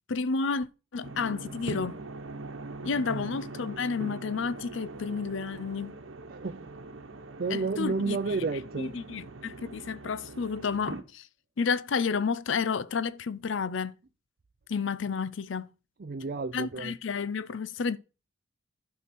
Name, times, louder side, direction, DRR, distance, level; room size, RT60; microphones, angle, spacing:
voice 1, 0.1-2.0 2.8-6.0 7.5-8.2 8.8-11.3 11.6-13.9 14.7-15.7 16.5-18.0, left 5 dB, 70° left, 0.5 m, -31 dB
sound 1, 1.0-11.0, right 2 dB, 85° right, 1.1 m, -42 dB
voice 2, 6.3-6.7 7.4-8.9 16.0-16.9, right 4 dB, 50° right, 0.5 m, -31 dB
11.5 x 4.7 x 5.9 m
head